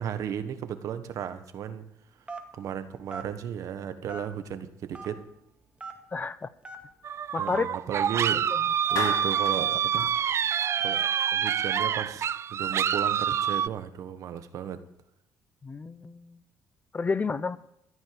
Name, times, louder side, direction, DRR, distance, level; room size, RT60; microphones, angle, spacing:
voice 1, 0.0-1.9 2.6-5.2 7.4-8.4 8.9-10.1 10.8-11.0 11.3-14.8, right 9 dB, 65° right, 10 dB, 1.3 m, -34 dB
Telephone, 2.3-2.6 3.1-3.3 4.1-4.5 4.9-5.1 5.8-6.0 6.6-6.8 7.4-7.6 8.2-8.3 9.0-9.3 10.0-10.2, right 4 dB, 20° right, 2.0 m, -39 dB
voice 2, 6.1-6.5 7.3-7.7 8.5-8.7 15.6-16.4 16.9-17.6, left 4 dB, 25° left, 16 dB, 0.6 m, -30 dB
sound 1, 7.0-13.7, right 9 dB, 50° right, 0.4 m, -27 dB
Clapping, 9.0-9.6, left 6 dB, 75° left, 2.7 m, -32 dB
14.5 x 5.4 x 9.7 m, 0.82 s
cardioid pair, 90°, 6 cm